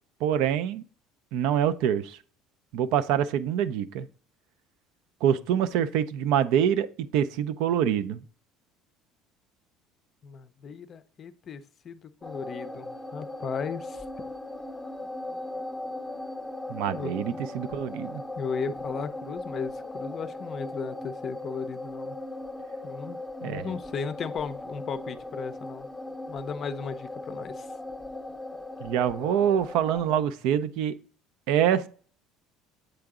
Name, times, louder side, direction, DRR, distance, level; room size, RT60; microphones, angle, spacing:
voice 1, 0.2-0.8 1.3-2.2 2.7-4.1 5.2-8.2 16.7-18.2 23.4-23.7 28.8-30.9 31.5-31.9, right 9 dB, 75° right, 0.5 m, -25 dB
voice 2, 10.2-14.0 16.9-17.4 18.4-22.2 22.8-23.2 23.4-25.9 26.3-27.7, left 6 dB, 35° left, 0.5 m, -36 dB
sound 1, 12.2-30.2, left 2 dB, ahead, 0.7 m, -38 dB
8.0 x 3.8 x 3.6 m
cardioid pair, 140°, 0 cm